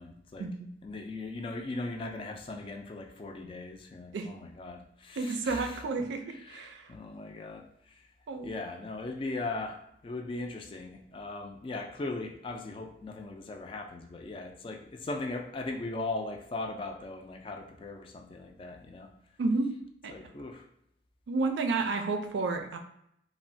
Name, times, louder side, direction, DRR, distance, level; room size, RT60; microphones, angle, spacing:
voice 1, 0.0-0.5 0.8-5.8 6.3-7.9 8.4-19.1 20.1-20.7, left 2 dB, 30° left, 3 dB, 0.3 m, -39 dB
voice 2, 5.2-6.9 8.3-8.5 19.4-19.7 20.0-20.1 21.3-22.8, right 3 dB, 90° right, 5 dB, 0.4 m, -31 dB
3.0 x 2.1 x 2.6 m, 0.74 s
head